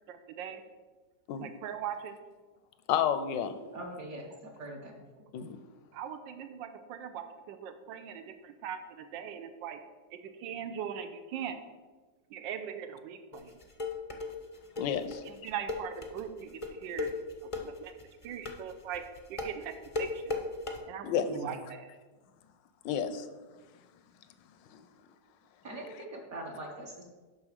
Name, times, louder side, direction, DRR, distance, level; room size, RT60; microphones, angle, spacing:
voice 1, 0.1-0.6 1.4-2.2 5.9-9.8 10.1-11.6 12.3-13.6 15.2-17.1 17.4-17.9 18.2-19.0 19.3-20.4 20.9-21.9, right 8 dB, 85° right, 9 dB, 1.4 m, -40 dB
voice 2, 2.9-3.6 5.3-5.6 14.8-15.2 21.0-21.3 22.8-23.3 24.7-24.9, left 8 dB, 80° left, 11 dB, 1.3 m, -30 dB
voice 3, 3.7-5.3 21.3-21.5 25.6-27.0, right 1 dB, 55° right, -2 dB, 1.5 m, -42 dB
sound 1, 13.3-20.8, left 3 dB, 35° left, 0.5 m, -36 dB
7.2 x 5.6 x 6.5 m, 1.3 s
omnidirectional pair, 2.0 m